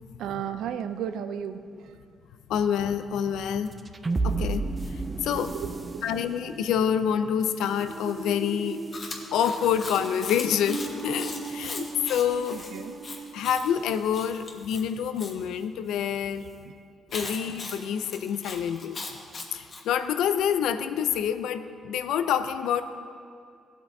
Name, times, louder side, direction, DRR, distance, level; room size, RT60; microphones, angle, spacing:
voice 1, 0.2-1.9 5.3-6.0 12.5-12.9 17.2-17.3, right 8 dB, 80° right, 11 dB, 0.4 m, -34 dB
voice 2, 2.5-3.8 4.2-5.6 6.0-8.8 9.3-12.6 13.3-16.5 17.1-19.0 19.5-22.8, left 8 dB, 85° left, 11 dB, 0.4 m, -27 dB
sound 1, 3.7-14.2, right 3 dB, 25° right, 0.5 m, -35 dB
Chewing mastication, 8.9-15.3 17.1-19.8, left 3 dB, 40° left, 1.2 m, -39 dB
14.5 x 8.0 x 2.7 m, 2.3 s
cardioid pair, 90°, 0 cm